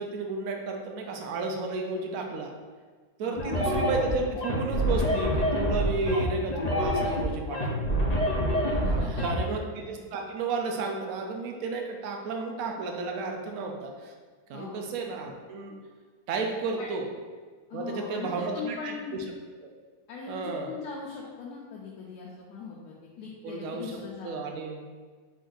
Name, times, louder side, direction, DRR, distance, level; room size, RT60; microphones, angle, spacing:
voice 1, 0.0-2.5 3.2-7.9 8.9-14.1 14.5-15.7 16.3-17.1 17.7-19.0 20.3-20.8 23.4-24.8, right 3 dB, 65° right, 2 dB, 1.0 m, -32 dB
sound 1, 3.4-9.4, equal, 40° left, 0.5 m, -26 dB
voice 2, 8.6-9.1 14.5-14.7 16.8-16.9 17.7-19.2 20.1-24.5, left 5 dB, 80° left, -3 dB, 1.1 m, -40 dB
5.1 x 2.6 x 3.8 m, 1.5 s
omnidirectional pair, 1.7 m